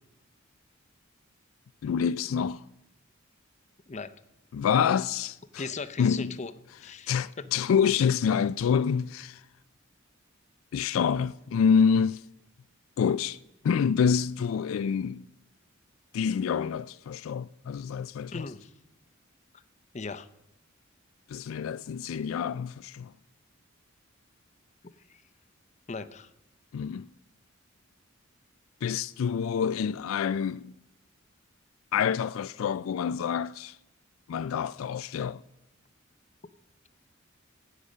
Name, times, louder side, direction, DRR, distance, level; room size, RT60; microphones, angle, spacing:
voice 1, 1.8-2.7 4.5-5.7 6.0-6.4 7.1-9.4 10.7-12.2 13.0-13.4 13.6-15.3 16.1-18.5 21.3-23.1 26.7-27.1 28.8-30.8 31.9-33.8 34.3-35.4, left 7 dB, 75° left, 0.3 m, -27 dB
voice 2, 5.6-6.5 6.8-7.1 18.3-18.7 19.9-20.3 25.1-25.2 25.9-26.3, left 4 dB, 35° left, 0.6 m, -37 dB
11.5 x 8.6 x 6.6 m
head